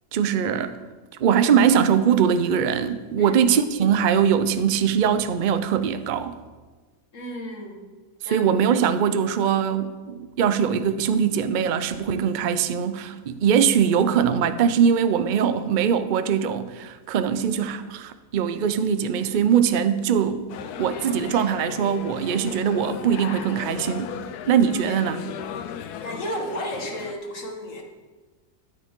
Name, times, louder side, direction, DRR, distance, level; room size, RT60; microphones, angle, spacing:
voice 1, 0.1-0.8 1.2-6.4 8.2-20.5 20.8-24.1 24.5-25.3, right 7 dB, 60° right, 0.5 m, -22 dB
voice 2, 7.1-7.8 8.3-8.5 26.0-27.8, equal, 55° left, 1.9 m, -33 dB
sound 1, 20.5-27.1, left 8 dB, 85° left, 1.2 m, -36 dB
13.0 x 9.9 x 3.7 m
omnidirectional pair, 1.6 m